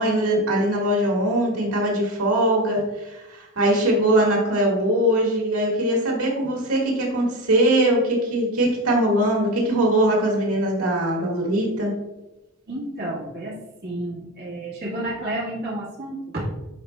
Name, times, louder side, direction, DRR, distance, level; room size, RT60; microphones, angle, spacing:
voice 1, 0.0-11.9, right 1 dB, 80° right, -2 dB, 1.7 m, -21 dB
voice 2, 12.7-16.5, right 1 dB, 50° right, -5 dB, 1.6 m, -31 dB
11.0 x 4.5 x 2.2 m, 1.0 s
head